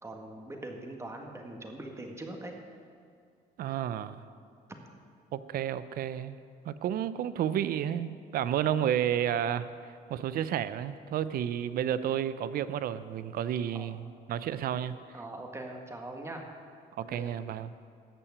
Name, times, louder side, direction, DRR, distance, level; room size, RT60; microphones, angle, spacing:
voice 1, 0.0-2.5 13.7-13.9 15.1-16.5 17.0-17.3, right 2 dB, 15° right, 2 dB, 1.6 m, -42 dB
voice 2, 3.6-4.2 5.3-6.4 6.6-9.7 10.1-15.0 17.0-17.7, right 10 dB, 60° right, 14 dB, 0.6 m, -31 dB
14.0 x 5.8 x 8.3 m, 2.3 s
cardioid pair, 110°, 17 cm